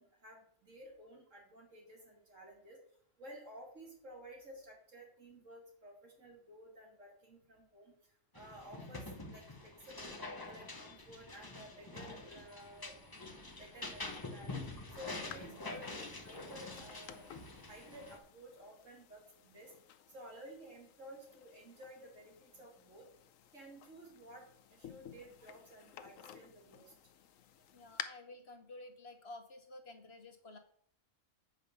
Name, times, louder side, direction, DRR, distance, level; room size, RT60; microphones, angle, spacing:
voice 1, 0.0-2.8 3.2-7.9 8.3-9.0 9.3-10.2 10.4-12.9 13.5-14.7 15.0-17.3 17.7-19.7 20.1-23.1 23.5-26.9, right 1 dB, 70° right, -1 dB, 3.2 m, -54 dB
sound 1, 8.3-18.2, left 2 dB, 20° left, 0.9 m, -46 dB
sound 2, 15.3-28.0, left 10 dB, 80° left, 1.1 m, -53 dB
voice 2, 27.7-30.6, left 2 dB, 50° left, 6 dB, 1.3 m, -52 dB
8.1 x 5.2 x 6.7 m, 0.64 s
omnidirectional pair, 1.4 m